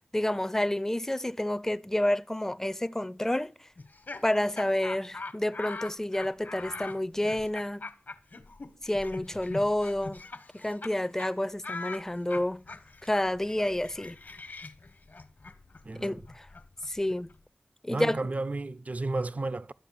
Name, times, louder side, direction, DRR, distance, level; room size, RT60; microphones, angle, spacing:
voice 1, 0.1-3.5 4.2-7.8 8.8-10.2 10.6-12.6 13.0-14.2 15.9-16.5 16.9-17.3 17.8-18.2, left 1 dB, 15° left, 0.6 m, -29 dB
Laughter, 3.8-10.9 11.2-11.3 11.6-17.4, left 3 dB, 65° left, 1.4 m, -42 dB
voice 2, 15.8-16.2 17.9-19.7, right 2 dB, 45° right, 0.6 m, -32 dB
12.5 x 8.1 x 6.9 m
wide cardioid pair, 85°, 3 cm